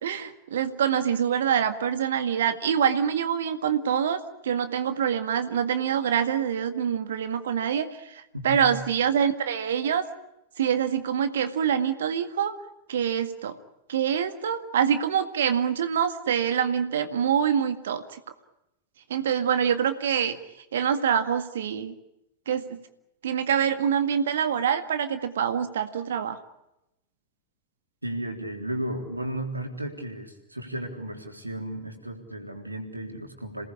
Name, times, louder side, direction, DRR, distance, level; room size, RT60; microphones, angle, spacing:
voice 1, 0.0-10.0 10.6-12.5 12.9-13.6 13.9-18.2 19.1-20.4 20.7-22.0 22.5-22.8 23.2-26.4, right 8 dB, 60° right, 9 dB, 1.9 m, -25 dB
voice 2, 8.3-8.7 28.0-33.7, right 1 dB, 85° right, 3 dB, 3.7 m, -34 dB
27.5 x 19.0 x 8.6 m, 0.89 s
figure-of-eight pair, 90°, 0 cm